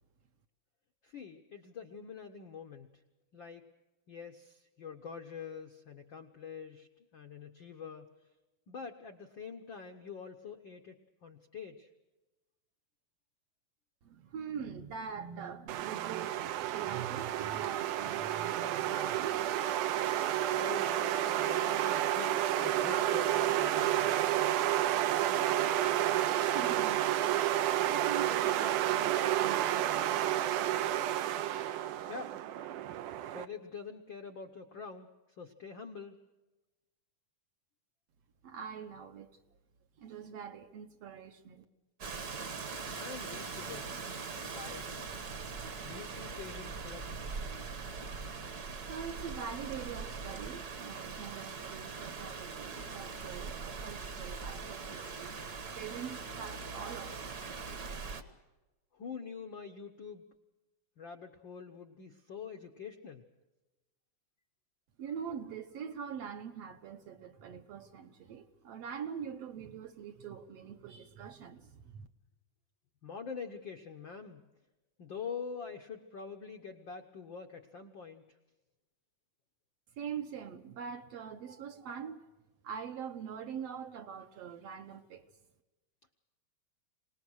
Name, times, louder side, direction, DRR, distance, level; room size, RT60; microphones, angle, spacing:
voice 1, 1.0-2.9 3.3-3.7 4.1-8.1 8.7-11.0 11.2-11.9 20.5-24.2 32.1-32.3 33.3-35.1 35.4-36.2 42.9-43.9 44.4-45.1 45.8-47.3 58.9-60.2 61.0-63.2 73.0-74.4 75.0-78.2, left 6 dB, 65° left, 1.2 m, -45 dB
voice 2, 14.0-19.5 19.9-20.0 26.4-31.1 38.4-39.3 40.0-41.7 48.9-55.4 55.8-57.5 65.0-72.1 80.0-82.3 82.6-85.3, right 7 dB, 65° right, 1.7 m, -44 dB
sound 1, 15.7-33.5, right 12 dB, 80° right, 2.5 m, -30 dB
Rain, 42.0-58.2, right 4 dB, 45° right, 1.4 m, -41 dB
26.0 x 19.5 x 6.3 m
omnidirectional pair, 3.6 m